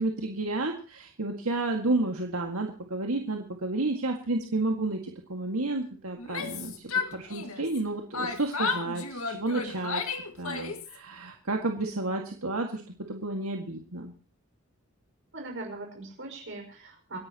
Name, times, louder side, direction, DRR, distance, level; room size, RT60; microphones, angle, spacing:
voice 1, 0.0-10.0 10.4-12.8 13.1-14.1, right 2 dB, 80° right, 2 dB, 2.0 m, -31 dB
Yell, 6.2-7.8 8.1-11.0, left 4 dB, 80° left, 2.0 m, -33 dB
voice 2, 15.3-17.2, right 2 dB, 55° right, 2 dB, 5.5 m, -40 dB
27.0 x 11.0 x 3.0 m, 0.39 s
head